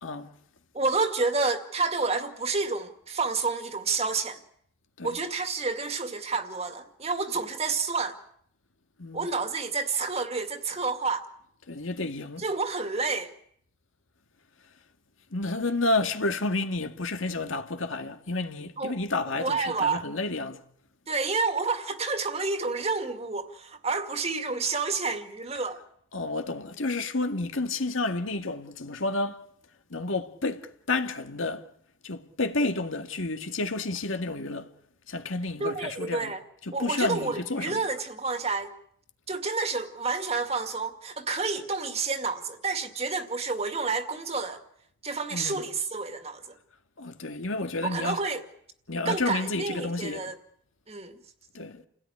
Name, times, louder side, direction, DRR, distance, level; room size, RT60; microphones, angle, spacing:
voice 1, 0.7-4.4 5.0-8.2 9.1-11.3 12.4-13.3 18.8-19.0 19.4-20.0 21.1-25.8 35.6-36.4 36.7-38.7 39.3-44.6 45.0-46.4 47.8-48.4 49.1-50.3 50.9-51.1, right 4 dB, 35° right, 2.2 m, -29 dB
voice 2, 11.7-12.4 15.3-20.6 26.1-29.4 29.9-31.7 32.0-34.7 35.1-36.3 36.7-37.8 45.3-45.6 47.0-48.2 48.9-50.3 51.5-51.8, left 2 dB, 90° left, 2.0 m, -30 dB
29.5 x 17.0 x 10.0 m
head